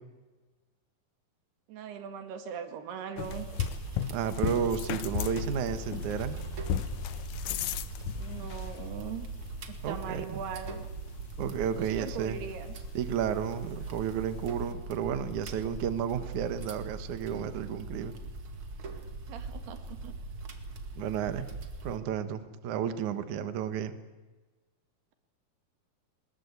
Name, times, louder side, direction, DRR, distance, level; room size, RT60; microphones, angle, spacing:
voice 1, 1.7-3.5 8.2-9.3 9.7-10.9 11.8-12.9 19.3-20.1, right 7 dB, 85° right, 8 dB, 3.9 m, -40 dB
sound 1, 3.2-14.7, left 11 dB, 75° left, 1.8 m, -38 dB
sound 2, 3.2-22.0, right 3 dB, 40° right, 2.2 m, -41 dB
voice 2, 4.1-6.4 9.8-10.4 11.4-12.4 12.9-18.1 21.0-21.5 21.8-24.0, right 8 dB, 60° right, 10 dB, 2.5 m, -32 dB
22.0 x 21.0 x 8.2 m, 1.2 s
omnidirectional pair, 4.5 m